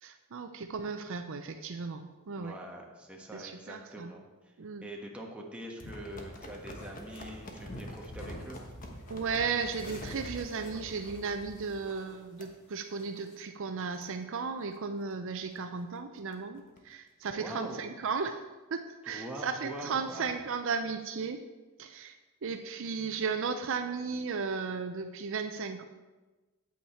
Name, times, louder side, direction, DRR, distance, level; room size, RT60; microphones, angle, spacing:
voice 1, 0.0-2.5 3.3-4.1 4.6-4.8 9.1-18.4 18.7-21.4 21.8-22.2 22.4-25.8, right 5 dB, 60° right, 7 dB, 0.5 m, -35 dB
voice 2, 2.3-4.5 4.8-8.6 17.3-17.9 19.1-20.3, right 1 dB, 5° right, -1 dB, 1.3 m, -44 dB
sound 1, 5.8-12.0 12.4-12.5 13.0-13.2 13.6-13.7 14.0-14.1 14.6-14.8 15.2-15.3 15.5-15.6 15.9-16.8 17.4-17.5, left 1 dB, 40° left, 1.1 m, -45 dB
sound 2, 6.4-13.4, left 1 dB, 90° left, 1.8 m, -56 dB
8.6 x 8.5 x 4.3 m, 1.2 s
head